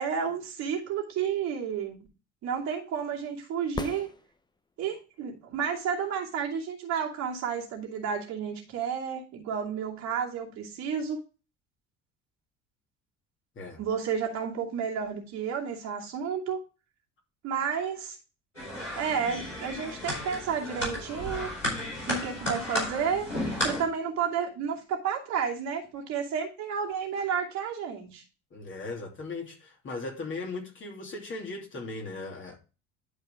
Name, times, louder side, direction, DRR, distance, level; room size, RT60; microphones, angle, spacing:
voice 1, 0.0-2.0 2.4-4.1 4.8-11.2 13.8-16.6 17.4-18.2 18.9-21.5 22.1-23.3 23.6-28.2, right 7 dB, 50° right, 2.6 m, -31 dB
sound 1, 3.7-4.9 8.8-8.9, left 3 dB, 10° left, 0.9 m, -38 dB
sound 2, 18.5-23.8, left 1 dB, 90° left, 3.4 m, -33 dB
voice 2, 28.5-32.6, left 3 dB, 35° left, 2.8 m, -38 dB
11.5 x 4.8 x 3.7 m
figure-of-eight pair, 60°, 36 cm